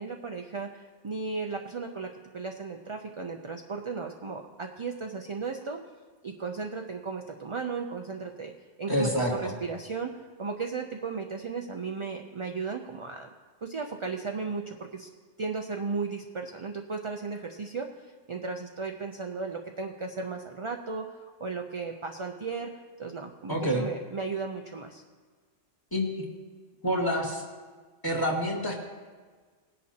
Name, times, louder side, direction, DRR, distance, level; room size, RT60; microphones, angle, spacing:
voice 1, 0.0-5.8 6.2-8.5 8.8-13.3 13.6-15.1 15.4-22.7 23.0-25.0, right 4 dB, 35° right, 3 dB, 0.5 m, -35 dB
voice 2, 8.9-9.5 23.5-23.9 25.9-26.2 26.8-27.4 28.0-28.8, equal, 20° left, -2 dB, 2.0 m, -27 dB
19.5 x 10.5 x 2.9 m, 1.5 s
omnidirectional pair, 1.2 m